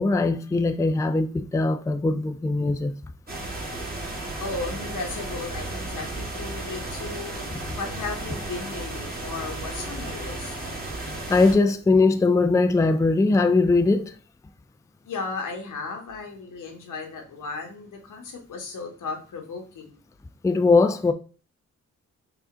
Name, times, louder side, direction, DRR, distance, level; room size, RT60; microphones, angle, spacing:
voice 1, 0.0-3.0 11.0-14.1 20.4-21.1, left 3 dB, 10° left, 0.4 m, -21 dB
sound 1, 3.3-11.5, right 2 dB, 30° right, 1.6 m, -34 dB
voice 2, 4.4-10.7 15.0-20.0, left 4 dB, 80° left, 1.2 m, -35 dB
4.9 x 2.5 x 3.7 m
cardioid pair, 60°, 31 cm